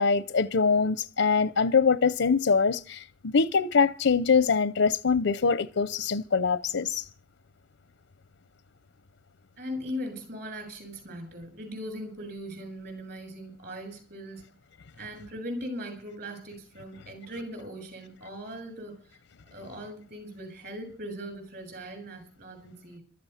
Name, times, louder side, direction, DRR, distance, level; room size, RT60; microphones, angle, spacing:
voice 1, 0.0-7.1, left 5 dB, 85° left, 0.7 m, -24 dB
voice 2, 9.6-14.4 15.0-18.9 19.5-23.0, equal, 55° right, 7.5 m, -39 dB
15.5 x 13.5 x 5.8 m
head